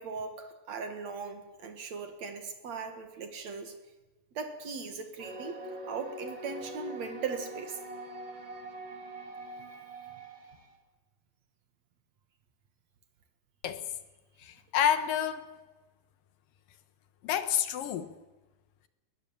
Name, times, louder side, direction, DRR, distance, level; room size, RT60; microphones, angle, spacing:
voice 1, 0.0-3.7 4.3-7.8, right 5 dB, 55° right, 7 dB, 2.7 m, -39 dB
sound 1, 5.2-10.7, right 1 dB, 35° right, 3.1 m, -43 dB
voice 2, 14.4-15.4 17.2-18.1, left 10 dB, 75° left, 11 dB, 2.8 m, -29 dB
22.0 x 19.5 x 7.4 m, 1.2 s
omnidirectional pair, 4.1 m